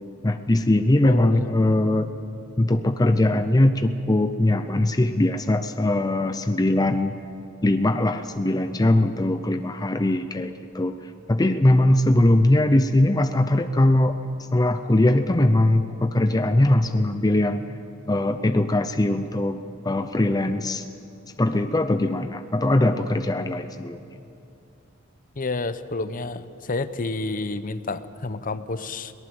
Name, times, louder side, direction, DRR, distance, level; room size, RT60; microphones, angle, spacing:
voice 1, 0.2-2.1 2.6-7.2 7.6-11.0 11.3-14.2 14.5-17.6 18.1-20.8 21.4-24.0, left 1 dB, 20° left, 8 dB, 0.6 m, -21 dB
voice 2, 1.0-1.6 25.4-29.1, left 3 dB, 45° left, 13 dB, 0.8 m, -30 dB
22.5 x 18.5 x 7.9 m, 2.6 s
head